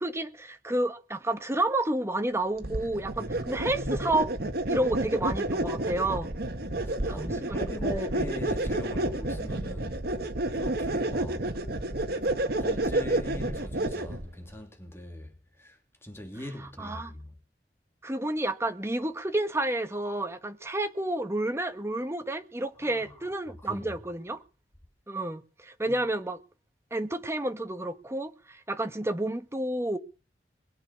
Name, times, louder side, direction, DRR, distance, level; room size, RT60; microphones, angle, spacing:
voice 1, 0.0-4.3 4.7-6.3 7.1-7.6 7.9-8.1 16.8-17.1 18.0-24.4 25.1-26.4 26.9-30.0, right 1 dB, 15° right, 1.3 m, -30 dB
sound 1, 2.6-14.3, right 1 dB, 60° right, 1.7 m, -30 dB
voice 2, 3.2-4.1 6.8-10.0 10.5-11.4 12.6-17.3 22.8-23.2 23.6-24.0 25.9-26.0, equal, 15° left, 3.0 m, -41 dB
22.0 x 8.9 x 6.0 m
head